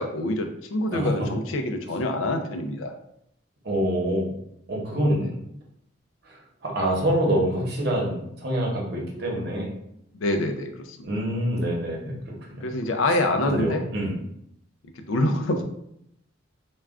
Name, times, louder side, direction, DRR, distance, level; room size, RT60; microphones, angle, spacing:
voice 1, 0.0-2.9 10.1-11.1 12.6-13.8 15.0-15.6, left 1 dB, 80° left, 6 dB, 0.4 m, -26 dB
voice 2, 0.9-1.3 3.6-4.3 4.7-5.4 6.2-9.7 11.0-12.7 13.4-14.2, right 1 dB, 55° right, -2 dB, 0.8 m, -26 dB
2.3 x 2.2 x 3.5 m, 0.75 s
head